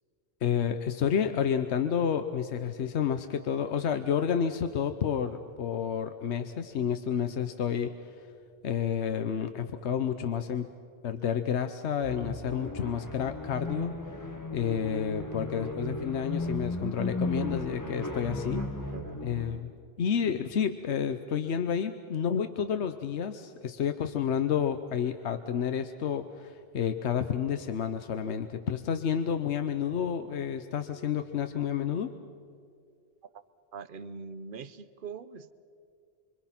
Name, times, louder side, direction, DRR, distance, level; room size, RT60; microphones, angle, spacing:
voice 1, 0.4-7.9 8.6-10.7 11.0-13.9 14.5-18.6 19.2-19.7 20.0-32.1, left 8 dB, 85° left, 8 dB, 1.1 m, -30 dB
sound 1, 12.0-19.7, left 2 dB, 15° left, 1.3 m, -35 dB
voice 2, 18.6-19.6 33.3-33.4 33.7-35.5, right 5 dB, 55° right, 14 dB, 1.0 m, -44 dB
26.5 x 25.0 x 5.9 m, 2.3 s
omnidirectional pair, 1.1 m